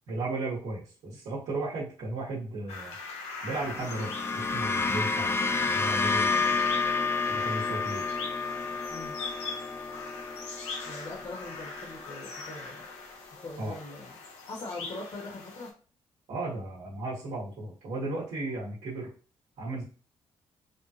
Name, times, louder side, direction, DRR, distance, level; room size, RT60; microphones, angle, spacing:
voice 1, 0.1-3.0 3.4-5.4 5.7-6.5 7.3-8.0 13.6-13.8 16.3-19.1 19.6-19.8, right 2 dB, 80° right, -5 dB, 1.3 m, -35 dB
sound 1, 2.7-15.7, left 4 dB, 80° left, 0.8 m, -41 dB
sound 2, 3.6-12.0, left 4 dB, 20° left, 0.4 m, -30 dB
voice 2, 10.8-12.9 13.4-14.1 14.5-15.7, left 2 dB, 50° left, -3 dB, 1.4 m, -41 dB
3.5 x 2.3 x 2.8 m, 0.38 s
supercardioid pair, 60°, 11 cm